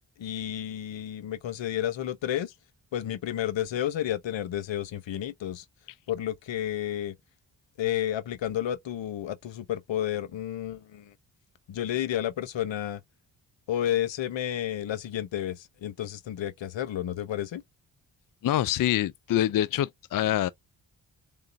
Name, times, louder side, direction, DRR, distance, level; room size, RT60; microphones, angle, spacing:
voice 1, 0.2-2.5 2.9-5.6 6.1-7.1 7.8-11.1 11.7-13.0 13.7-17.6, left 11 dB, 70° left, 0.9 m, -31 dB
voice 2, 18.4-20.5, left 12 dB, 45° left, 0.4 m, -25 dB
3.8 x 3.7 x 2.6 m
supercardioid pair, 45°, 47 cm